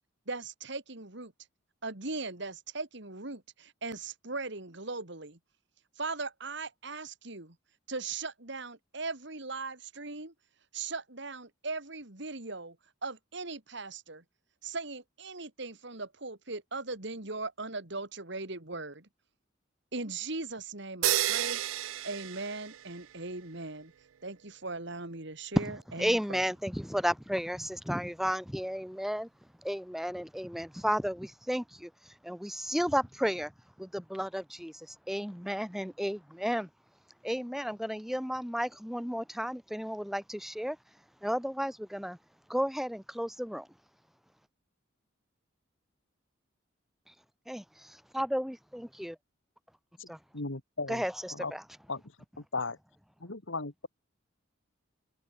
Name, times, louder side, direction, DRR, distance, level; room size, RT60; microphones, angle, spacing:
voice 1, 0.3-1.3 1.8-5.4 6.0-7.6 7.9-10.3 10.7-12.8 13.0-14.2 14.6-19.1 19.9-21.6 22.0-23.9 24.2-26.4, right 3 dB, 60° right, 2.8 m, -39 dB
sound 1, 21.0-23.2, right 14 dB, 80° right, 0.4 m, -31 dB
voice 2, 25.6-29.3 29.6-33.5 33.8-36.7 37.2-40.8 41.2-42.2 42.5-43.7 47.5-49.2 50.1-50.2 50.9-51.6, equal, ahead, 2.6 m, -33 dB
voice 3, 50.0-51.0 51.3-51.5 51.9-52.0 52.4-52.8 53.2-53.9, left 3 dB, 70° left, 2.0 m, -36 dB
head